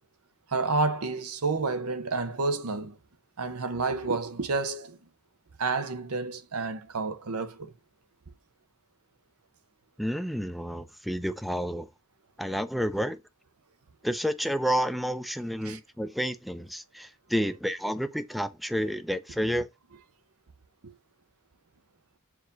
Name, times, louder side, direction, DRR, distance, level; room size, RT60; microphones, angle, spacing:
voice 1, 0.5-3.0 3.4-5.0 5.6-7.7 15.6-15.8 20.8-20.9, right 3 dB, 90° right, 0.8 m, -30 dB
voice 2, 10.0-11.9 12.4-13.2 14.0-19.7, equal, ahead, 0.5 m, -30 dB
7.0 x 4.8 x 3.9 m
head